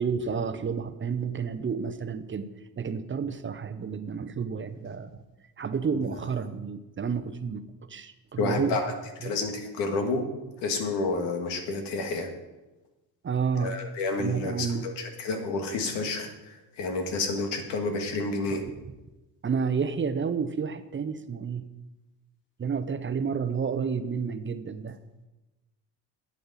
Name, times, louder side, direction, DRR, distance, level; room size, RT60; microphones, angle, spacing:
voice 1, 0.0-2.5 2.8-5.2 5.6-8.9 9.2-9.4 13.2-13.8 14.2-14.9 19.4-21.6 22.6-25.0, right 6 dB, 30° right, 11 dB, 0.7 m, -30 dB
voice 2, 8.4-8.9 9.2-10.2 10.6-12.3 13.6-18.6, left 3 dB, 90° left, 5 dB, 1.8 m, -30 dB
11.5 x 8.5 x 4.1 m, 1.1 s
cardioid pair, 100°, 43 cm